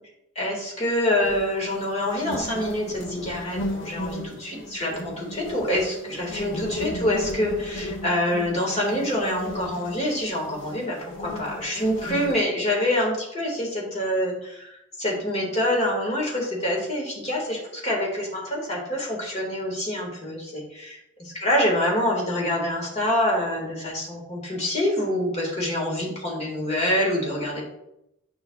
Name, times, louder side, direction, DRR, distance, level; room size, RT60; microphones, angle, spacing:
voice 1, 0.4-14.7 15.0-21.0 21.3-27.6, left 1 dB, 30° left, -2 dB, 1.9 m, -26 dB
sound 1, 1.2-12.4, left 1 dB, 60° left, 0.9 m, -35 dB
9.0 x 5.6 x 2.4 m, 0.83 s
head